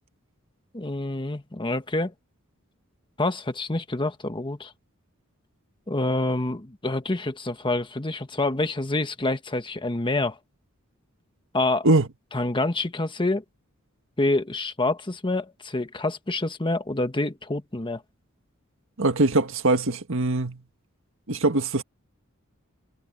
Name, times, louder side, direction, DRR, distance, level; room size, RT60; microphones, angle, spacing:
voice 1, 0.7-2.1 3.2-4.7 5.9-10.4 11.5-11.9 12.3-13.4 14.2-18.0, left 2 dB, 25° left, 1.3 m, -27 dB
voice 2, 19.0-20.6 21.3-21.8, right 2 dB, 65° right, 1.7 m, -22 dB
head